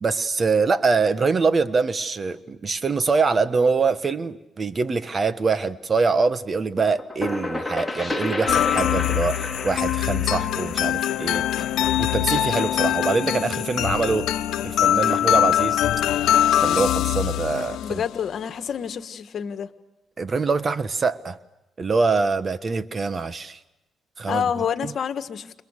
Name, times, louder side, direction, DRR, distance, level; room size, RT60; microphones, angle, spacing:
voice 1, 0.0-11.4 12.0-14.3 14.6-15.8 16.6-18.0 20.2-21.4 21.8-23.6 24.2-24.9, right 4 dB, 35° right, 1.4 m, -24 dB
sound 1, 6.8-12.3, left 2 dB, 5° left, 5.2 m, -31 dB
sound 2, 8.5-18.1, left 11 dB, 80° left, 1.1 m, -23 dB
voice 2, 17.7-19.7 24.3-25.6, left 8 dB, 60° left, 1.7 m, -28 dB
30.0 x 29.0 x 6.6 m
cardioid pair, 90°, 0 cm